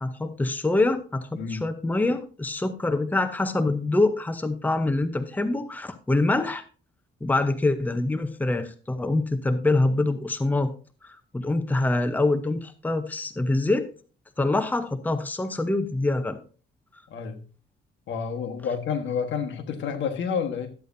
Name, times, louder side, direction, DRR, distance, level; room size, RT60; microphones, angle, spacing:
voice 1, 0.0-6.6 7.2-10.7 11.0-13.9 14.4-16.4, left 2 dB, 10° left, 0.7 m, -25 dB
voice 2, 17.1-17.4 18.1-20.7, left 6 dB, 70° left, 1.3 m, -29 dB
12.5 x 8.3 x 2.6 m
cardioid pair, 90°, 20 cm